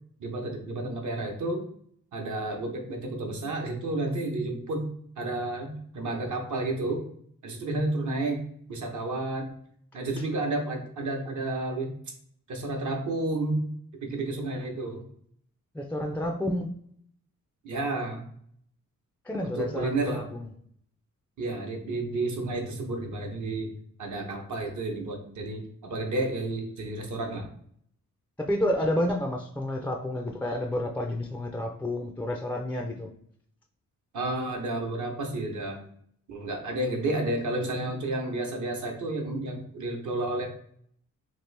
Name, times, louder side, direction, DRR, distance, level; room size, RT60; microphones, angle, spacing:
voice 1, 0.2-1.7 2.1-4.8 5.2-7.0 7.4-8.4 8.7-9.5 9.9-11.9 12.5-13.6 14.0-15.0 17.6-18.2 19.6-20.2 21.4-23.7 24.0-27.5 34.1-35.8 36.3-40.5, right 2 dB, 65° right, 2 dB, 0.9 m, -31 dB
voice 2, 15.7-16.7 19.3-20.4 28.4-33.1, left 1 dB, 5° left, 2 dB, 0.3 m, -30 dB
3.0 x 2.5 x 3.2 m, 0.66 s
cardioid pair, 80°, 32 cm